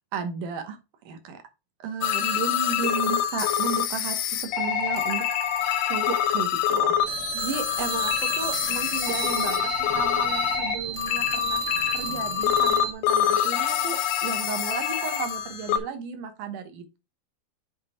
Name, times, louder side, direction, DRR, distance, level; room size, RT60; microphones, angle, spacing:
voice 1, 0.1-0.8 1.1-1.4 1.8-11.6 11.9-17.0, right 6 dB, 65° right, 7 dB, 2.3 m, -34 dB
sound 1, 2.0-15.8, left 10 dB, 75° left, 1.9 m, -26 dB
sound 2, 7.0-12.9, right 9 dB, 85° right, 2.9 m, -34 dB
7.6 x 3.9 x 4.3 m, 0.27 s
omnidirectional pair, 4.5 m